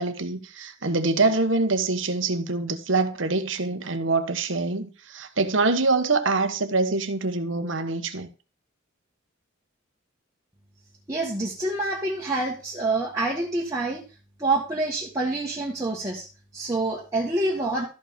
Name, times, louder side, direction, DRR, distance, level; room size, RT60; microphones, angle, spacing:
voice 1, 0.0-8.3, right 3 dB, 65° right, 1.1 m, -25 dB
voice 2, 11.1-14.1 14.4-16.3 16.5-17.9, right 2 dB, 15° right, 1.7 m, -27 dB
13.0 x 5.1 x 5.2 m
head